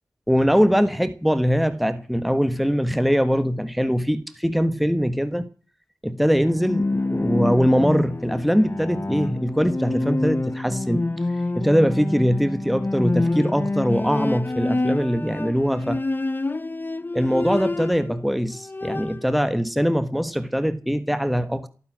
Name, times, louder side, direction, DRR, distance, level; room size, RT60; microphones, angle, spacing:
voice 1, 0.3-5.5 6.0-11.1 11.5-16.0 17.1-21.7, equal, ahead, 1.3 m, -22 dB
Bowed string instrument, 6.4-18.2 18.5-19.3, left 2 dB, 30° left, 0.7 m, -27 dB
18.0 x 9.6 x 7.5 m
wide cardioid pair, 65°, 7 cm